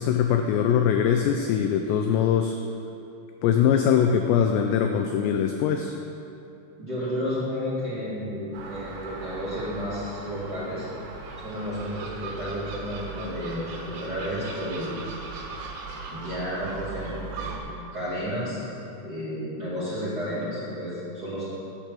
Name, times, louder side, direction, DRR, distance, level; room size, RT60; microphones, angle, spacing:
voice 1, 0.0-2.6 3.4-5.9, left 8 dB, 85° left, 4 dB, 2.5 m, -22 dB
voice 2, 6.8-10.9 11.4-14.9 16.1-18.6 19.0-21.5, equal, 30° right, -11 dB, 2.2 m, -32 dB
Gull seagull, 8.5-17.6, right 4 dB, 70° right, 2.7 m, -38 dB
10.5 x 6.0 x 8.2 m, 2.6 s
omnidirectional pair, 5.5 m